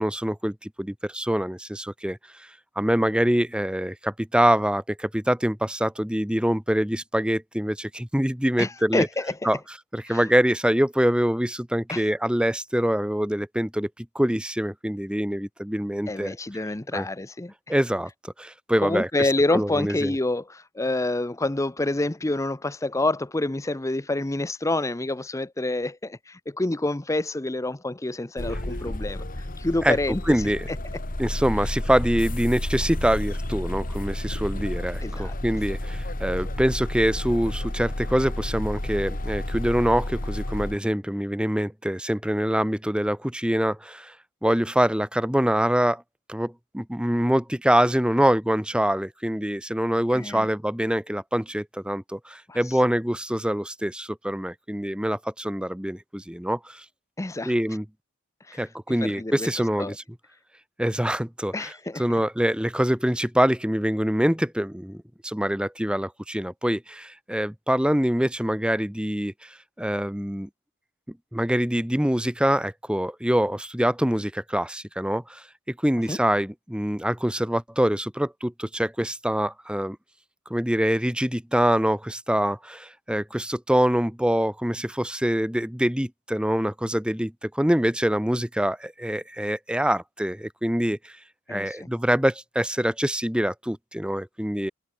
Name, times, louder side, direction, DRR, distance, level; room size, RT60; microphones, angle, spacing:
voice 1, 0.0-2.5 2.7-9.1 9.4-9.6 9.9-16.3 16.9-17.0 17.7-20.1 29.8-30.0 30.3-30.7 31.2-44.1 44.4-46.0 46.3-56.8 57.4-57.8 58.6-59.9 60.8-61.5 62.0-70.5 71.3-80.0 80.5-91.1 91.5-94.7, equal, 5° right, 1.4 m, -25 dB
voice 2, 8.6-9.5 10.0-10.3 11.9-12.1 16.1-17.7 18.8-30.8 31.6-31.7 35.0-35.3 50.1-50.5 52.5-52.8 57.2-57.5 58.4-60.0 61.5-62.2 76.1-76.2 91.5-91.9, left 2 dB, 15° left, 0.6 m, -28 dB
sound 1, 28.4-40.8, left 1 dB, 40° left, 2.1 m, -31 dB
head